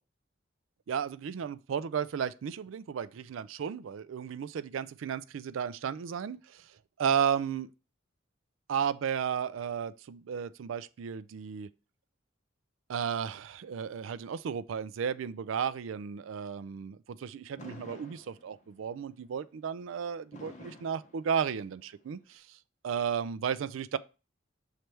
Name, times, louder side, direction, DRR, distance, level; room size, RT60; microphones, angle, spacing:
voice 1, 0.9-6.7 7.0-7.7 8.7-11.7 12.9-22.6 22.8-24.0, right 7 dB, 80° right, 0.4 m, -34 dB
Fireworks, 17.6-18.9 20.3-21.9, left 2 dB, 35° left, 0.9 m, -50 dB
6.5 x 3.3 x 4.5 m
head